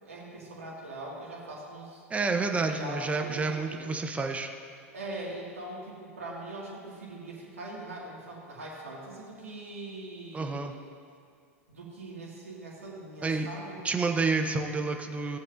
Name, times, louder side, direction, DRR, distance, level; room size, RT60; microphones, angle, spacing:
voice 1, 0.0-2.0 2.4-3.9 4.9-10.7 11.7-13.8, right 2 dB, 85° right, -5 dB, 2.3 m, -41 dB
voice 2, 2.1-4.5 10.3-10.7 13.2-13.5 13.8-15.4, right 3 dB, 15° right, 5 dB, 1.0 m, -29 dB
17.5 x 7.6 x 2.7 m, 2.3 s
hypercardioid pair, 90°, 7 cm